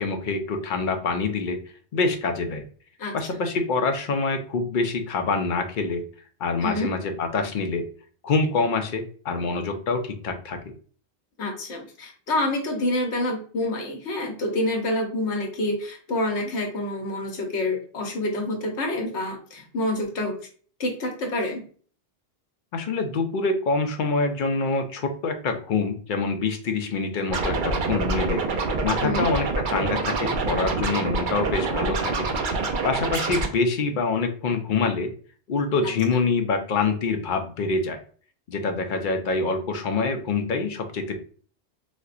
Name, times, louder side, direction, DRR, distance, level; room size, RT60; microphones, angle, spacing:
voice 1, 0.0-1.6 1.9-2.6 3.1-6.0 6.4-7.9 8.2-10.6 22.7-32.5 32.8-35.1 35.5-38.0 38.5-41.1, left 4 dB, 60° left, 6 dB, 0.6 m, -26 dB
voice 2, 6.6-6.9 11.4-20.5 20.8-21.6 29.0-29.3 35.8-35.9, left 1 dB, 85° left, 1 dB, 1.1 m, -27 dB
Scratching (performance technique), 27.3-33.5, right 3 dB, 55° right, 0.6 m, -26 dB
4.1 x 2.1 x 2.4 m, 0.44 s
omnidirectional pair, 1.1 m